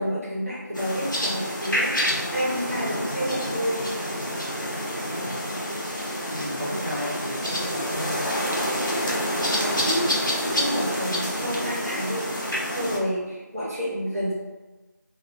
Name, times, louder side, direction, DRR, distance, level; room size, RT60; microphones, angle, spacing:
voice 1, 0.0-3.8 9.5-10.1 10.5-14.3, equal, 50° right, -7 dB, 1.1 m, -29 dB
sound 1, 0.8-13.0, equal, 75° left, 0.8 m, -28 dB
voice 2, 6.3-8.4, left 1 dB, 25° right, -13 dB, 0.5 m, -33 dB
2.5 x 2.3 x 2.7 m, 1.2 s
figure-of-eight pair, 175°, 10 cm